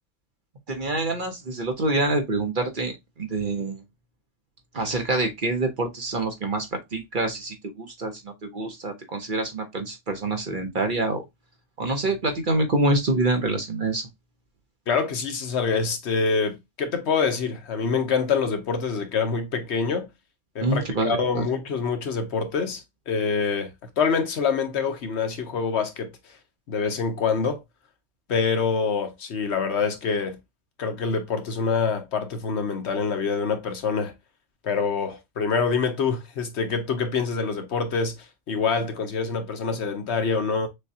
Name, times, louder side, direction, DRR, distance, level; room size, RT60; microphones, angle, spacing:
voice 1, 0.7-3.8 4.7-11.2 11.8-14.1 20.6-21.4, right 2 dB, 45° right, 0.9 m, -26 dB
voice 2, 14.9-20.1 20.5-26.1 26.7-27.6 28.3-30.4 30.8-34.1 34.6-40.7, left 5 dB, 65° left, 1.0 m, -26 dB
6.5 x 2.3 x 2.7 m
omnidirectional pair, 1.3 m